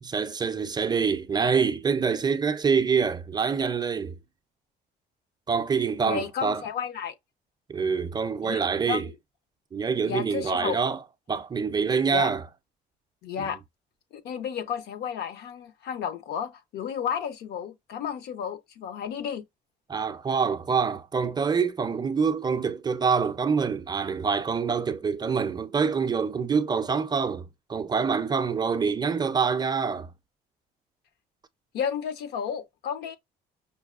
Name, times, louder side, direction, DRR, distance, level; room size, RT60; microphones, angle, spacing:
voice 1, 0.0-4.2 5.5-6.6 7.7-9.1 9.7-11.0 11.3-12.4 19.9-30.1, right 5 dB, 25° right, 0.4 m, -26 dB
voice 2, 6.0-7.1 8.4-8.6 8.9-9.1 10.0-10.8 12.1-12.3 13.2-13.6 14.1-19.4 31.7-33.2, left 8 dB, 75° left, 0.7 m, -32 dB
5.3 x 2.2 x 2.4 m
cardioid pair, 110°, 17 cm